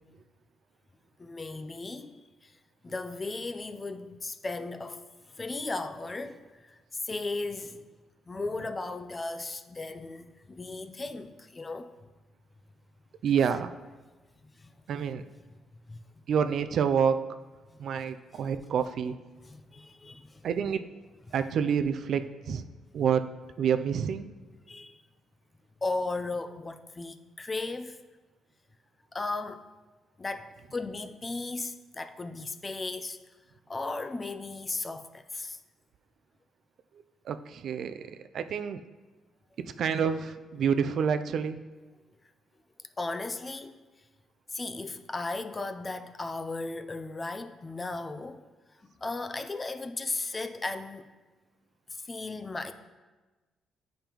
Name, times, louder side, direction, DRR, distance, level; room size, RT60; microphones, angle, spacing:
voice 1, 1.2-2.2 2.4-2.5 2.8-5.0 5.3-7.8 8.3-11.9 14.6-14.7 15.9-16.0 17.7-17.8 18.3-18.4 19.4-20.5 24.7-25.0 25.8-28.0 29.1-29.6 30.2-33.2 33.7-35.6 43.0-43.8 44.5-48.4 49.0-51.1 52.0-52.7, left 3 dB, 25° left, 0.4 m, -36 dB
voice 2, 13.2-13.7 14.9-15.2 16.3-17.3 17.8-19.2 20.4-20.9 21.3-22.6 22.9-23.3 23.6-24.3 37.3-38.8 39.6-41.6, right 7 dB, 65° right, 0.3 m, -28 dB
8.8 x 5.1 x 3.0 m
cardioid pair, 90°, 0 cm